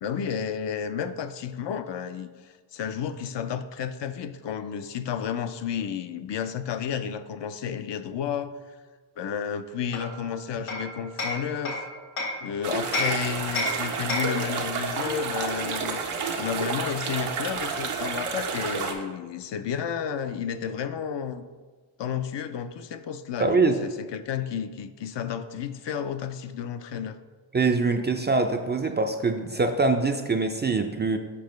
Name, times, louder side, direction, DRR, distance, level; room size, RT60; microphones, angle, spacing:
voice 1, 0.0-8.8 9.2-11.8 12.4-16.0 16.4-21.4 22.0-27.2, left 8 dB, 60° left, 10 dB, 0.5 m, -32 dB
Hammer, 9.9-12.4 12.9-14.5, left 2 dB, 85° left, 1.5 m, -31 dB
sound 1, 12.6-18.9, right 5 dB, 90° right, 0.9 m, -30 dB
voice 2, 23.4-23.8 27.5-31.2, right 3 dB, 25° right, 5 dB, 0.3 m, -23 dB
7.0 x 4.8 x 3.1 m, 1.4 s
cardioid pair, 65°, 49 cm